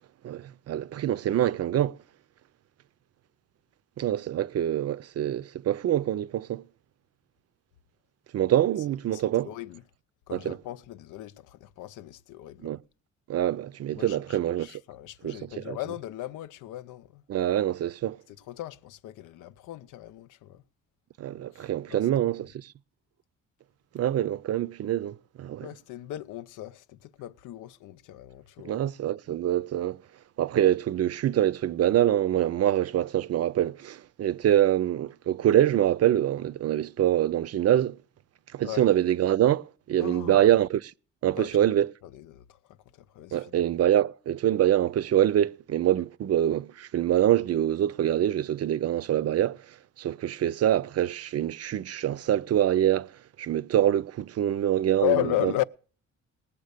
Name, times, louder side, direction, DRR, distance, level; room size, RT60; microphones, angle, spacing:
voice 1, 0.2-2.0 4.0-6.6 8.3-9.5 10.3-10.6 12.6-12.8 13.3-14.7 15.2-15.8 17.3-18.2 21.2-22.7 23.9-25.7 28.6-30.0 30.4-38.0 38.5-40.9 41.2-41.9 43.3-49.6 50.0-53.1 53.4-55.1 55.4-55.5, right 11 dB, 55° right, 0.6 m, -25 dB
voice 2, 9.1-9.8 10.3-12.7 13.9-17.2 18.3-20.6 21.5-22.1 25.6-28.8 38.6-38.9 40.0-40.5 41.3-41.5 42.0-43.6 55.0-55.6, left 15 dB, 85° left, 0.6 m, -35 dB
19.0 x 7.1 x 6.6 m
cardioid pair, 90°, 30 cm